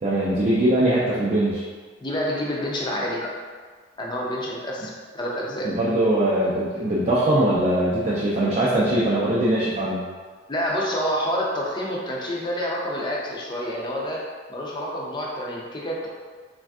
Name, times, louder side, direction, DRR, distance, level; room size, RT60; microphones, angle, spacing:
voice 1, 0.0-1.6 5.6-10.1, right 1 dB, 35° right, -7 dB, 0.4 m, -21 dB
voice 2, 2.0-3.3 4.0-5.7 10.5-14.2 14.5-16.1, equal, 25° left, -3 dB, 0.4 m, -28 dB
3.3 x 2.5 x 2.3 m, 1.5 s
head